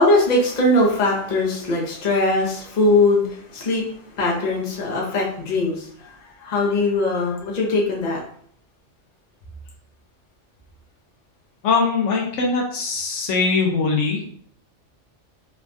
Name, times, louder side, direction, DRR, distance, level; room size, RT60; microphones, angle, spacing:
voice 1, 0.0-3.9 4.2-6.1 6.4-8.2, left 2 dB, 40° left, -3 dB, 0.8 m, -20 dB
voice 2, 11.6-14.2, left 4 dB, 75° left, 0 dB, 1.0 m, -21 dB
3.2 x 2.3 x 2.5 m, 0.62 s
omnidirectional pair, 1.3 m